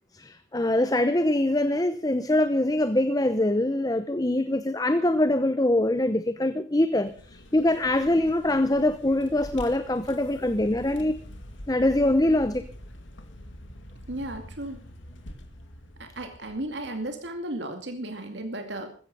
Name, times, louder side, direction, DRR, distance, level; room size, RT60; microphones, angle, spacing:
voice 1, 0.1-11.2 11.7-12.6, left 1 dB, 20° left, 0.8 m, -24 dB
Vehicle, 7.0-17.3, left 1 dB, 80° left, 2.5 m, -45 dB
voice 2, 14.1-14.8 16.0-18.9, right 1 dB, 65° right, 2.4 m, -34 dB
15.5 x 14.5 x 5.4 m
head